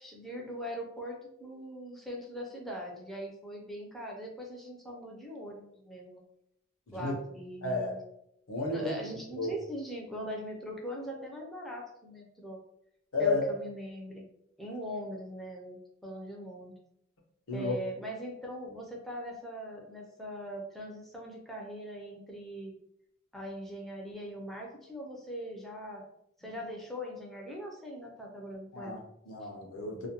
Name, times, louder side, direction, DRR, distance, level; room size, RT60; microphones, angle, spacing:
voice 1, 0.0-6.2 6.9-8.0 8.7-12.6 13.2-14.2 14.6-16.7 17.5-22.7 23.3-26.0 26.4-29.0, equal, ahead, -1 dB, 0.4 m, -41 dB
voice 2, 7.6-7.9 8.5-8.9 9.4-9.5 13.1-13.5 17.5-17.7 28.7-30.1, left 3 dB, 90° left, 1 dB, 0.6 m, -32 dB
2.3 x 2.1 x 2.8 m, 0.78 s
head